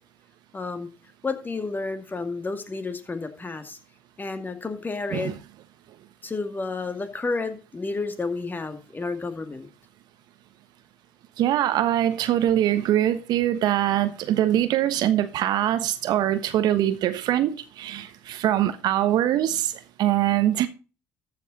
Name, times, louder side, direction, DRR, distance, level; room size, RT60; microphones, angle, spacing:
voice 1, 0.5-0.9 1.2-3.8 4.2-5.3 6.2-9.7, left 3 dB, 25° left, 2.2 m, -31 dB
voice 2, 11.4-20.7, right 12 dB, 60° right, 1.1 m, -23 dB
14.0 x 6.6 x 4.1 m
hypercardioid pair, 60°, 8 cm